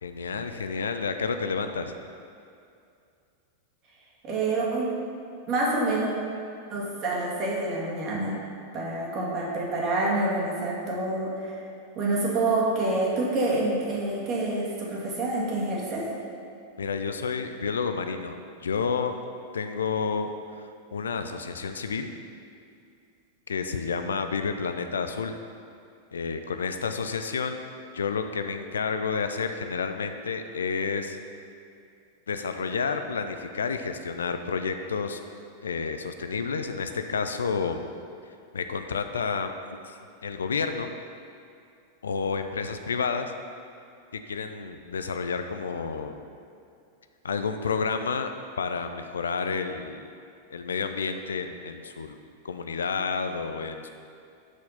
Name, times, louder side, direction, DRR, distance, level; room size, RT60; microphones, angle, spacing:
voice 1, 0.0-1.9 16.8-19.2 19.5-20.3 20.9-22.1 23.5-25.3 26.1-27.6 27.9-31.2 32.3-35.2 35.6-37.9 38.5-39.5 39.8-40.9 42.0-43.3 44.1-46.3 47.2-48.3 48.6-50.1 50.5-52.2 52.4-53.9, left 5 dB, 70° left, 8 dB, 0.4 m, -30 dB
voice 2, 4.2-4.9 5.5-6.1 6.7-8.4 8.7-11.6 12.0-16.1, right 2 dB, 35° right, -4 dB, 1.9 m, -27 dB
6.4 x 6.4 x 5.4 m, 2.5 s
figure-of-eight pair, 90°, 0 cm